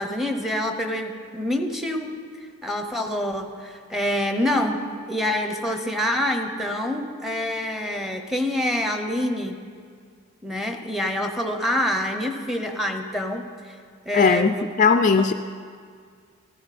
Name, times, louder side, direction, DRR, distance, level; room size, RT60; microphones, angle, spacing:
voice 1, 0.0-2.1 2.6-9.6 10.4-13.5 14.1-14.6, left 1 dB, ahead, 5 dB, 0.8 m, -26 dB
voice 2, 14.1-15.3, left 5 dB, 35° left, 8 dB, 0.3 m, -18 dB
14.5 x 14.0 x 4.2 m, 2.1 s
head